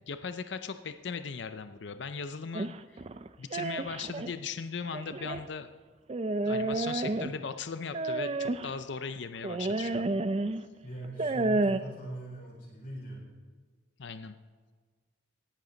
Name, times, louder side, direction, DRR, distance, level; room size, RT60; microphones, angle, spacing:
voice 1, 0.1-3.0 3.4-5.7 6.4-10.2 14.0-14.4, left 5 dB, 60° left, 10 dB, 0.5 m, -38 dB
sound 1, 2.5-4.3 4.9-5.5 6.1-7.5 7.9-8.7 9.4-10.6 11.0-11.8, right 2 dB, 30° right, 0.4 m, -30 dB
voice 2, 10.8-13.2, right 1 dB, 45° left, -4 dB, 4.3 m, -41 dB
18.0 x 11.0 x 4.0 m, 1.5 s
head